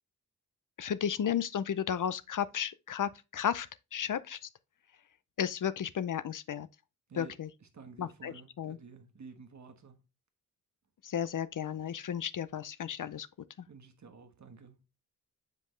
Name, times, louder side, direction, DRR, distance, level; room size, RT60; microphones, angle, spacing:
voice 1, 0.8-3.7 3.9-4.5 5.4-6.7 7.1-7.5 8.0-8.8 11.0-13.3, left 9 dB, 60° left, 0.5 m, -33 dB
voice 2, 7.1-10.0 13.7-14.8, right 5 dB, 50° right, 1.2 m, -52 dB
7.6 x 5.3 x 3.1 m
wide cardioid pair, 150°, 35 cm